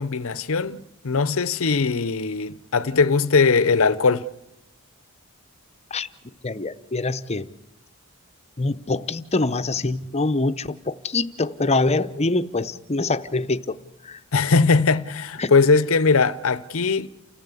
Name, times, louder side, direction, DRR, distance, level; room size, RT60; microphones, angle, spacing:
voice 1, 0.0-4.2 14.3-17.1, left 4 dB, 65° left, 0.7 m, -20 dB
voice 2, 6.4-7.5 8.6-13.8 14.0-14.2 15.4-15.5, left 3 dB, 30° left, 0.7 m, -24 dB
29.0 x 14.5 x 8.3 m
head